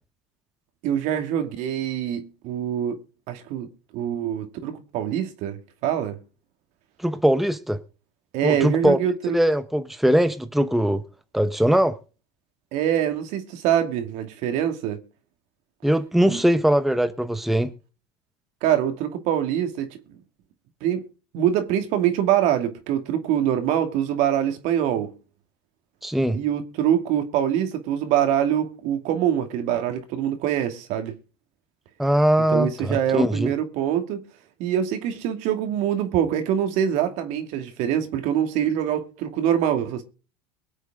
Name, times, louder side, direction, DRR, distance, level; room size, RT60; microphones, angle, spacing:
voice 1, 0.8-3.0 3.3-6.2 8.3-9.4 12.7-15.0 16.3-16.4 18.6-19.9 20.8-21.1 21.3-25.1 26.3-31.1 32.5-34.2 34.6-40.0, right 10 dB, 60° right, 2.6 m, -24 dB
voice 2, 7.0-7.8 8.4-9.0 9.3-11.0 11.3-12.0 15.8-17.7 26.0-26.4 32.0-33.5, equal, ahead, 1.1 m, -21 dB
23.0 x 8.2 x 3.7 m
hypercardioid pair, 95°, 13 cm